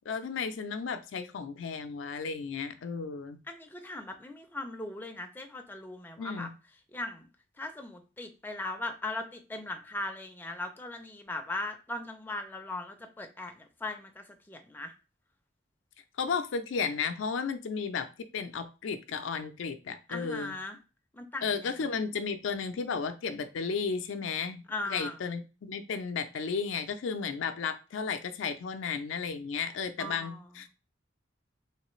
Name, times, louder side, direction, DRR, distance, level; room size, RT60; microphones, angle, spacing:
voice 1, 0.1-3.4 6.2-6.5 16.2-20.5 21.4-30.8, left 5 dB, 80° left, 0.4 m, -34 dB
voice 2, 3.5-6.5 6.9-7.3 7.6-14.9 20.1-20.8 21.1-21.7 24.7-25.2 30.0-30.5, left 2 dB, 10° left, 0.4 m, -39 dB
3.2 x 3.1 x 3.0 m
head